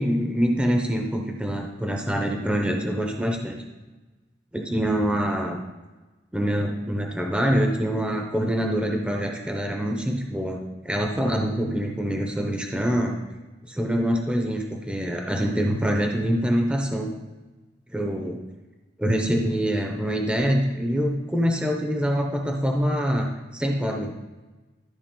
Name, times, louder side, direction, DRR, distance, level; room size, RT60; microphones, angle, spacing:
voice 1, 0.0-3.6 4.5-5.6 6.3-13.1 13.7-17.1 17.9-18.4 19.0-23.3 23.5-24.1, equal, 5° right, 1 dB, 0.8 m, -25 dB
13.0 x 4.8 x 3.8 m, 1.2 s
head